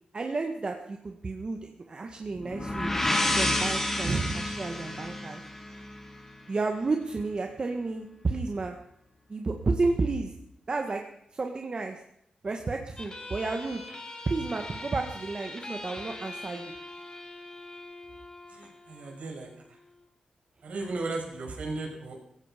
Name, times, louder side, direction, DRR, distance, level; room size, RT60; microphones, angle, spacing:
voice 1, 0.1-2.9 3.4-5.4 6.5-8.8 9.3-10.3 10.7-11.0 11.3-12.0 12.4-13.9 14.3-16.7, right 3 dB, 40° right, 4 dB, 1.6 m, -31 dB
sound 1, 2.3-6.2, left 1 dB, 15° left, 3.1 m, -29 dB
voice 2, 4.0-4.4 18.5-19.5 20.6-22.2, right 3 dB, 70° right, 1 dB, 5.9 m, -34 dB
sound 2, 13.0-20.0, left 2 dB, 35° left, 3.2 m, -43 dB
16.5 x 15.5 x 5.2 m, 0.75 s
wide cardioid pair, 100°, 2 cm